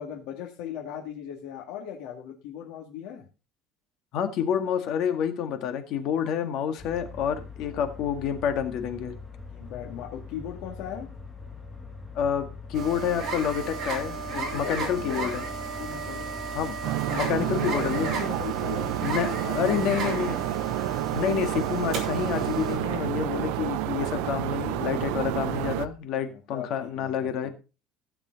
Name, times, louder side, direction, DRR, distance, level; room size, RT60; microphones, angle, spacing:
voice 1, 0.0-3.3 7.6-7.9 9.5-11.1 14.3-15.5 15.8-16.3 17.1-20.1 26.3-27.5, left 9 dB, 70° left, 2.2 m, -38 dB
voice 2, 4.1-9.1 12.2-15.4 16.5-18.1 19.0-20.4 20.7-27.5, left 8 dB, 50° left, 1.8 m, -29 dB
sound 1, 6.8-25.9, left 4 dB, 10° left, 1.7 m, -43 dB
sound 2, 12.7-22.8, right 4 dB, 35° right, 4.0 m, -34 dB
Roomtone Outside Neighborhood Day, 16.8-25.9, right 17 dB, 80° right, 0.5 m, -30 dB
15.5 x 7.1 x 4.0 m
cardioid pair, 170°, 0 cm